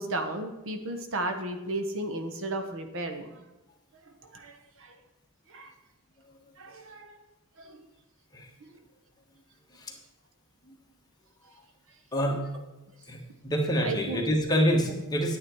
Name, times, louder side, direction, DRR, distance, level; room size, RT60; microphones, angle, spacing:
voice 1, 0.0-3.4 4.2-5.0 5.5-5.7 6.6-7.2 7.6-7.9 13.8-14.3 14.9-15.0, right 2 dB, 60° right, 7 dB, 1.0 m, -34 dB
voice 2, 13.1-15.4, equal, 20° left, 0 dB, 1.5 m, -27 dB
9.4 x 9.3 x 4.6 m, 1.0 s
head